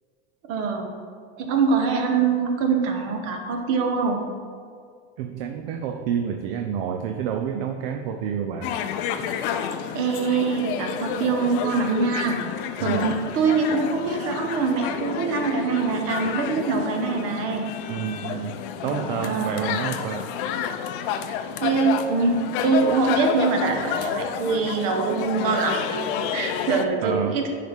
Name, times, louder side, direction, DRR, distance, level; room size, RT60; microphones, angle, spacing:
voice 1, 0.5-0.9 1.4-4.2 9.9-12.4 12.8-17.7 19.2-19.7 21.6-27.5, right 4 dB, 40° right, 3 dB, 1.1 m, -24 dB
voice 2, 5.2-8.7 12.8-13.2 17.9-18.5 18.8-20.3 27.0-27.5, right 8 dB, 60° right, 5 dB, 0.6 m, -29 dB
sound 1, 8.6-26.9, left 8 dB, 50° left, 0.5 m, -30 dB
10.5 x 4.9 x 3.5 m, 2.1 s
supercardioid pair, 155°, 33 cm